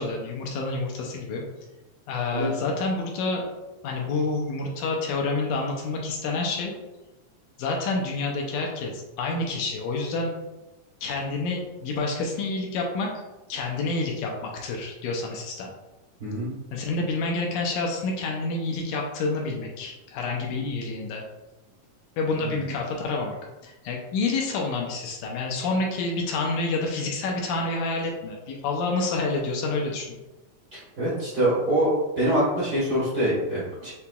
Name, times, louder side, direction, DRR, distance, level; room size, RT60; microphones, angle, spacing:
voice 1, 0.0-1.4 2.1-3.5 3.8-6.7 7.6-10.3 11.0-13.1 13.5-15.7 16.7-21.2 22.2-23.4 23.6-30.1, left 3 dB, 80° left, 0 dB, 1.9 m, -28 dB
voice 2, 16.2-16.5 22.4-22.7 30.7-33.9, right 1 dB, 80° right, -9 dB, 0.9 m, -25 dB
6.8 x 2.8 x 2.3 m, 1.1 s
omnidirectional pair, 3.9 m